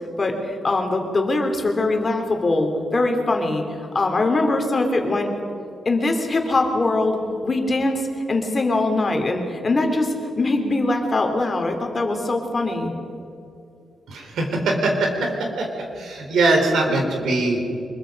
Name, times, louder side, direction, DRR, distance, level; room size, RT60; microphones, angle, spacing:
voice 1, 0.2-3.6 3.9-5.3 5.8-12.9, left 2 dB, 30° left, 4 dB, 2.9 m, -22 dB
voice 2, 14.1-17.6, right 2 dB, 90° right, 2 dB, 4.2 m, -22 dB
24.0 x 22.0 x 5.3 m, 2.6 s
wide cardioid pair, 130°, 0 cm